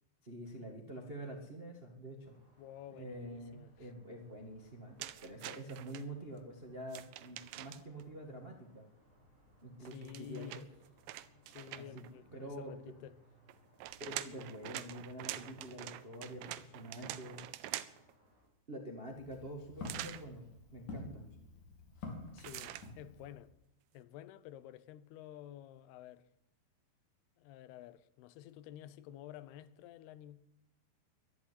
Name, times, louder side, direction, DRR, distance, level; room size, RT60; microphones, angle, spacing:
voice 1, 0.2-2.4 2.9-8.9 9.6-10.6 11.8-12.0 12.3-12.7 14.0-17.4 18.7-21.2, right 1 dB, 70° right, 0.5 m, -47 dB
sound 1, 2.2-18.5, equal, 10° right, 6.7 m, -66 dB
voice 2, 2.6-3.9 9.8-10.6 11.5-13.2 22.3-23.5 23.9-26.3 27.4-30.4, left 12 dB, 80° left, 2.7 m, -51 dB
sound 2, 5.0-6.0 6.9-8.0 9.8-12.1 13.5-18.1 19.8-20.2 22.4-22.9, right 14 dB, 90° right, 1.9 m, -45 dB
Walk footsteps, 19.0-23.5, left 3 dB, 50° left, 4.6 m, -49 dB
12.0 x 11.0 x 9.8 m
omnidirectional pair, 4.7 m